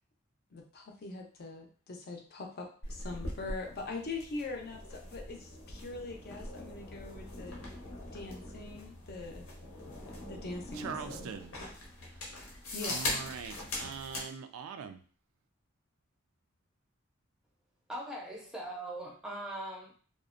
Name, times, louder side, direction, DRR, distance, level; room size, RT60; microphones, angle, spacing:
voice 1, 0.5-7.6 8.1-9.4 10.2-11.3 12.7-13.0, left 3 dB, 50° left, 2 dB, 0.5 m, -42 dB
sound 1, 2.8-14.3, left 1 dB, 85° left, 0.7 m, -42 dB
voice 2, 10.7-11.5 12.8-15.0, right 6 dB, 90° right, 8 dB, 0.3 m, -42 dB
voice 3, 17.9-19.9, right 1 dB, 5° right, -3 dB, 0.5 m, -40 dB
2.4 x 2.0 x 2.4 m, 0.42 s
head